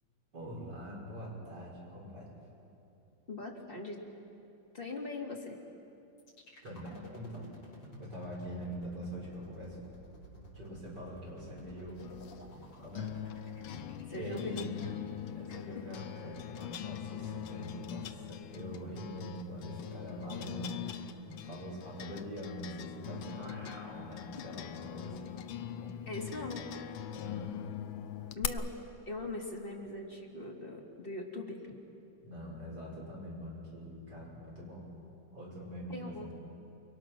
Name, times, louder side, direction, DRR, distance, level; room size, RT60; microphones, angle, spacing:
voice 1, 0.3-2.3 6.6-7.5 8.0-9.8 10.5-12.1 12.8-13.1 14.2-14.7 15.3-25.9 27.1-27.6 32.2-34.9 35.3-36.3, equal, 55° right, -4 dB, 6.8 m, -44 dB
voice 2, 3.3-4.0 4.7-5.6 14.1-15.0 15.5-15.9 26.1-26.9 28.3-28.7 29.1-31.7 35.9-36.3, left 2 dB, 30° left, -1 dB, 2.8 m, -41 dB
sound 1, 6.2-16.2, left 1 dB, 65° left, 5.1 m, -52 dB
sound 2, 12.0-28.5, left 10 dB, 85° left, 1.6 m, -42 dB
29.5 x 23.0 x 6.2 m, 2.7 s
omnidirectional pair, 2.1 m